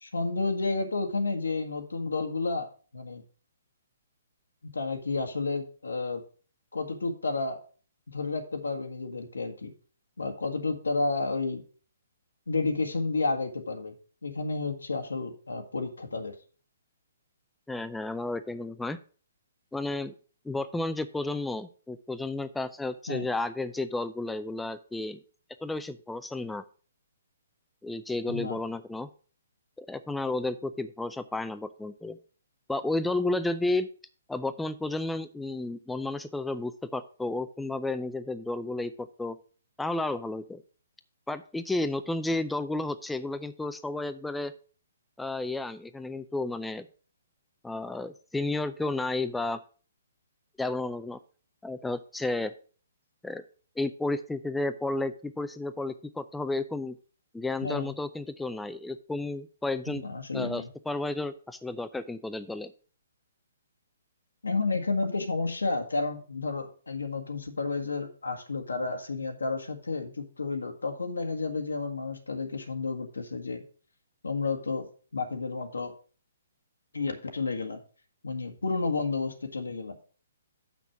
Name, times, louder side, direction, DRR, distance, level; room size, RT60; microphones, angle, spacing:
voice 1, 0.0-2.7 2.9-3.2 4.7-6.2 6.7-7.6 8.1-9.7 10.2-11.6 12.5-13.9 14.2-16.3 23.1-23.3 28.3-28.6 57.6-58.0 59.9-60.7 64.4-73.6 74.2-74.9 75.1-75.9 76.9-77.8 78.2-79.9, left 3 dB, 85° left, 5 dB, 1.6 m, -31 dB
voice 2, 17.7-19.0 19.7-20.1 20.4-25.2 25.6-26.6 27.8-29.1 29.8-32.2 32.7-33.9 34.3-39.4 39.8-40.6 41.3-44.5 45.2-46.9 47.6-49.6 50.6-51.2 51.6-52.5 53.2-53.4 53.8-57.0 57.3-60.0 60.3-62.7, left 2 dB, 5° left, 11 dB, 0.4 m, -32 dB
6.8 x 6.1 x 5.9 m, 0.39 s
hypercardioid pair, 135°, 0 cm